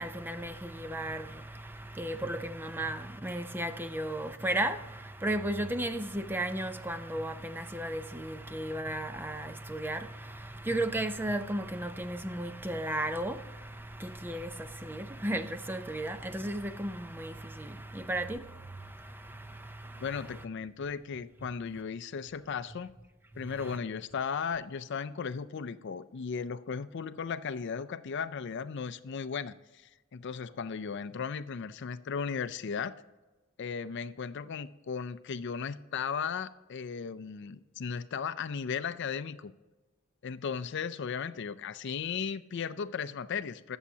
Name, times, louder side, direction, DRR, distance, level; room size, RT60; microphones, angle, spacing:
voice 1, 0.0-20.4 23.5-23.8, right 1 dB, 10° right, 0.5 m, -35 dB
voice 2, 20.0-22.9 23.4-32.9 33.6-39.5 40.2-43.8, left 6 dB, 60° left, 0.4 m, -36 dB
21.0 x 7.2 x 2.8 m
head